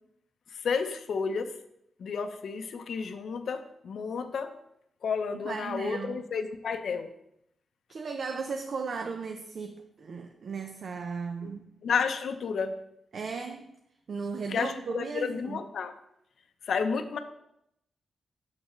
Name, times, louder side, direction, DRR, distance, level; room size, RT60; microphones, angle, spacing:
voice 1, 0.5-1.5 2.0-4.5 5.0-7.1 11.4-11.5 11.8-12.7 14.5-15.9 16.7-17.2, left 5 dB, 70° left, 9 dB, 0.5 m, -31 dB
voice 2, 5.4-6.2 7.9-11.6 13.1-13.7 14.1-15.6, right 5 dB, 60° right, 6 dB, 0.5 m, -36 dB
6.4 x 6.0 x 3.0 m, 0.79 s
cardioid pair, 90°, 0 cm